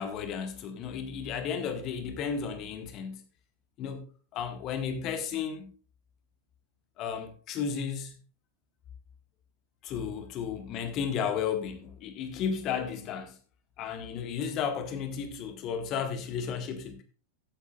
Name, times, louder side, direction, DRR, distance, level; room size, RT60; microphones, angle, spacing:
voice 1, 0.0-3.2 3.8-4.1 4.3-5.7 7.0-8.1 9.8-13.4 13.8-17.0, left 7 dB, 35° left, 1.8 m, -33 dB
15.0 x 8.1 x 2.5 m
figure-of-eight pair, 90°, 0 cm